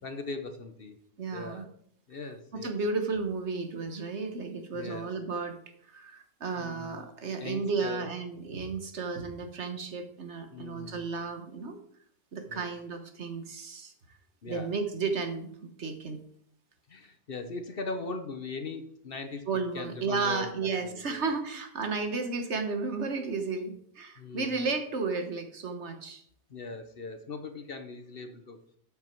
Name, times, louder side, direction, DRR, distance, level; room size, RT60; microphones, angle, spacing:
voice 1, 0.0-1.0 1.3-1.7 2.1-2.8 4.7-5.1 6.6-7.0 7.4-8.0 10.5-11.1 12.5-12.7 14.4-14.7 16.9-19.4 19.7-21.2 24.2-24.6 26.5-28.6, left 3 dB, 50° left, 7 dB, 1.1 m, -40 dB
voice 2, 1.2-1.6 2.5-5.5 5.8-11.8 12.3-13.9 14.5-16.2 19.5-26.2, right 4 dB, 60° right, 6 dB, 1.5 m, -33 dB
13.0 x 5.9 x 4.5 m, 0.67 s
omnidirectional pair, 1.3 m